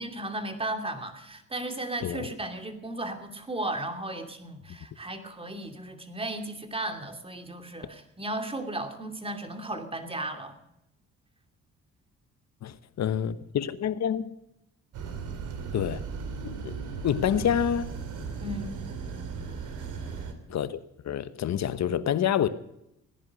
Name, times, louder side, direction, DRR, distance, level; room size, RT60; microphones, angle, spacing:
voice 1, 0.0-10.5 18.4-18.8, right 1 dB, 20° right, 2.8 m, -35 dB
voice 2, 2.0-2.3 12.6-14.3 15.7-16.0 16.4-16.8 17.0-18.0 20.5-22.5, left 9 dB, 60° left, 1.2 m, -28 dB
sound 1, 14.9-20.3, right 5 dB, 80° right, 2.8 m, -36 dB
18.0 x 10.5 x 6.4 m
cardioid pair, 90°, 30 cm